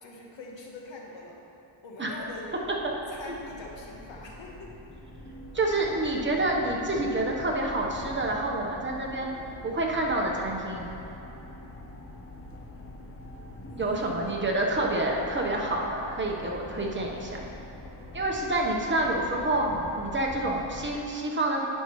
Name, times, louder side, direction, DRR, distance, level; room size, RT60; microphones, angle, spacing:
voice 1, 0.0-1.4 1.8-2.5 3.1-4.7 13.7-14.3, left 2 dB, 65° left, -1 dB, 1.4 m, -43 dB
sound 1, 2.2-21.0, left 1 dB, 30° left, 0.8 m, -44 dB
voice 2, 5.5-9.3 9.6-10.8 13.8-17.4 18.1-21.7, right 2 dB, 25° right, -1 dB, 1.1 m, -28 dB
10.0 x 5.7 x 3.2 m, 2.9 s
cardioid pair, 85°, 49 cm